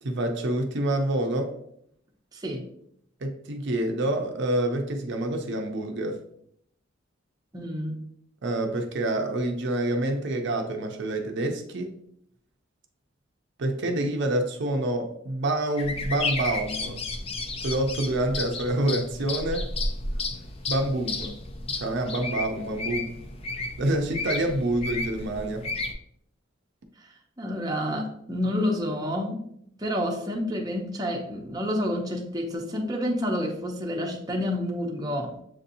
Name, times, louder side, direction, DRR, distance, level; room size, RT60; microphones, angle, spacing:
voice 1, 0.0-1.6 3.2-6.2 8.4-11.9 13.6-17.0 17.6-19.7 20.7-21.4 21.7-23.2 23.8-25.7, right 1 dB, 60° right, 4 dB, 0.5 m, -27 dB
voice 2, 2.3-2.7 7.5-8.0 17.2-17.3 27.4-29.4 29.8-35.4, left 1 dB, 20° right, 0 dB, 0.6 m, -29 dB
sound 1, 15.8-25.9, left 3 dB, 30° left, 0.4 m, -33 dB
7.1 x 2.7 x 2.6 m, 0.71 s
head